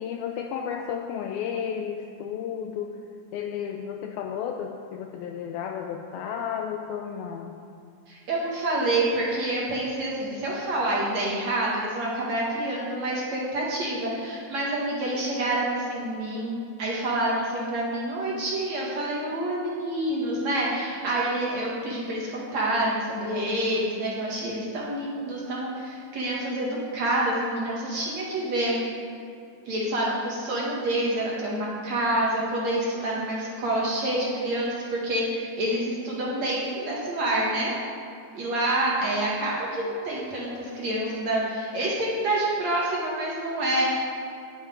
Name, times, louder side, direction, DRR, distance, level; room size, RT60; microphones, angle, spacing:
voice 1, 0.0-3.0 3.3-7.6, left 8 dB, 85° left, 3 dB, 2.2 m, -32 dB
voice 2, 8.1-28.8 29.7-37.7 38.3-43.9, right 1 dB, 50° right, -4 dB, 2.4 m, -27 dB
9.6 x 7.5 x 9.2 m, 2.5 s
omnidirectional pair, 4.9 m